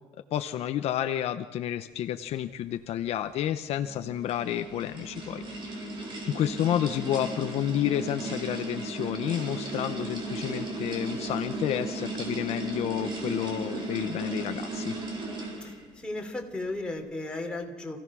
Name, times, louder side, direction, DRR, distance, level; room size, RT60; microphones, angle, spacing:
voice 1, 0.3-5.4 6.2-14.9, left 11 dB, 55° left, 9 dB, 0.8 m, -30 dB
sound 1, 3.7-15.9, right 2 dB, 40° right, 4.5 m, -36 dB
voice 2, 15.6-18.0, left 2 dB, 5° left, 1 dB, 3.1 m, -35 dB
28.0 x 16.5 x 6.2 m, 1.2 s
cardioid pair, 150°, 13 cm